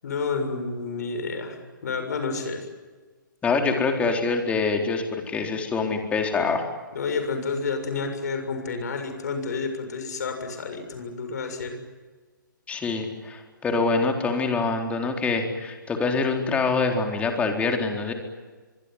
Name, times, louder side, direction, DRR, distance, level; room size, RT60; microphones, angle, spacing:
voice 1, 0.0-2.7 6.9-11.8, left 4 dB, 55° left, 7 dB, 6.9 m, -30 dB
voice 2, 3.4-6.7 12.7-18.1, left 4 dB, 10° left, 3 dB, 4.0 m, -25 dB
24.5 x 23.0 x 9.6 m, 1.3 s
figure-of-eight pair, 130°, 11 cm